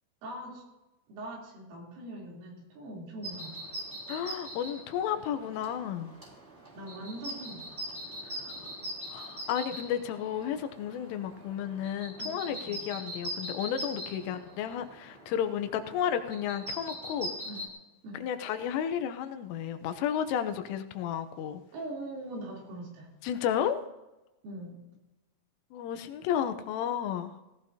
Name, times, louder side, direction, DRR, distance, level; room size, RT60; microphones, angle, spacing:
voice 1, 0.2-0.6 1.1-3.8 6.8-7.8 12.2-12.8 17.5-17.6 18.0-18.2 21.7-23.1 24.4-24.8, right 1 dB, 85° right, -3 dB, 6.0 m, -42 dB
sound 1, 3.2-17.7, equal, 15° right, 2.8 m, -42 dB
voice 2, 4.1-6.1 8.4-8.5 9.1-17.3 18.2-21.6 23.2-23.8 25.7-27.4, left 9 dB, 85° left, 9 dB, 3.4 m, -32 dB
18.0 x 16.5 x 2.8 m, 1.0 s
omnidirectional pair, 5.6 m